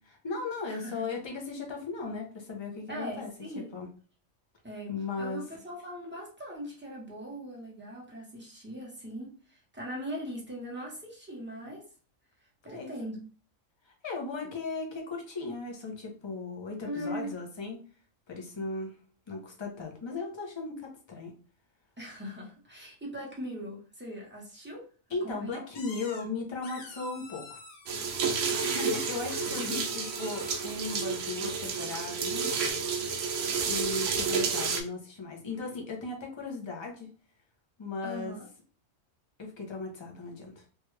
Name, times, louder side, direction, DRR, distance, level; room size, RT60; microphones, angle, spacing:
voice 1, 0.1-3.3 3.7-3.9 4.9-5.4 12.6-12.9 13.8-17.8 18.3-19.0 19.3-21.3 25.1-27.6 28.6-32.9 33.6-37.1 37.8-38.4 39.4-40.7, left 3 dB, 30° left, 0 dB, 0.5 m, -37 dB
voice 2, 0.7-1.0 2.9-3.8 4.6-11.8 12.6-13.2 16.8-17.3 22.0-24.8 25.2-25.6 28.1-28.6 29.1-29.4 34.3-34.5 38.0-38.4, equal, 10° right, -4 dB, 0.8 m, -40 dB
sound 1, 25.8-26.2 26.6-28.0 28.8-30.8 32.6-32.7, left 4 dB, 90° left, 1.2 m, -47 dB
sound 2, 27.9-34.8, right 5 dB, 70° right, 0.9 m, -31 dB
3.2 x 2.3 x 3.1 m, 0.39 s
omnidirectional pair, 1.4 m